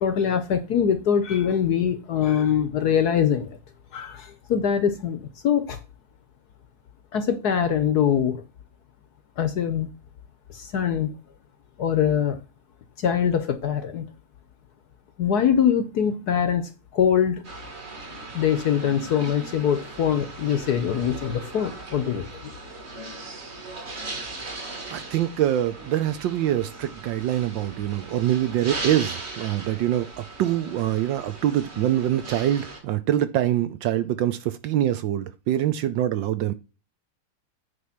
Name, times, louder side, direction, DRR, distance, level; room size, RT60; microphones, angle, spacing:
voice 1, 0.0-3.5 3.9-5.8 7.1-8.4 9.4-9.9 10.5-11.1 11.8-12.4 13.0-14.0 15.2-17.4 18.3-22.2, left 8 dB, 60° left, 1.1 m, -23 dB
sound 1, 17.4-32.8, right 2 dB, 30° right, 1.8 m, -38 dB
voice 2, 24.9-36.5, right 12 dB, 70° right, 1.2 m, -24 dB
9.5 x 3.4 x 5.8 m
omnidirectional pair, 2.3 m